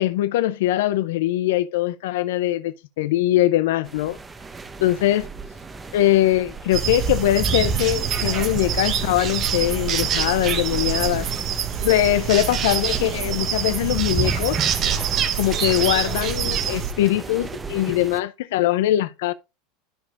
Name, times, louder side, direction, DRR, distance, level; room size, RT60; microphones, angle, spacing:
voice 1, 0.0-4.2 4.8-5.3 5.9-11.3 11.8-14.6 15.4-19.3, left 14 dB, 80° left, 0.4 m, -22 dB
sound 1, 3.8-18.2, right 4 dB, 15° right, 0.8 m, -34 dB
sound 2, 6.7-16.9, right 8 dB, 40° right, 1.1 m, -25 dB
12.0 x 5.0 x 2.5 m
supercardioid pair, 115°, 0 cm